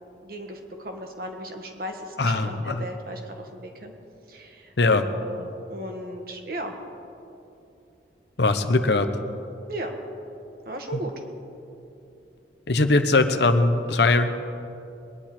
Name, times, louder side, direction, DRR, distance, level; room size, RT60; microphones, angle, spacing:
voice 1, 0.2-3.9 4.3-6.8 9.7-10.0 10.6-11.1, right 1 dB, 55° right, 3 dB, 1.6 m, -36 dB
voice 2, 2.2-2.8 4.8-5.1 8.4-9.1 10.9-11.0 12.7-14.3, left 3 dB, 70° left, 8 dB, 0.8 m, -20 dB
22.0 x 10.0 x 4.4 m, 2.8 s
head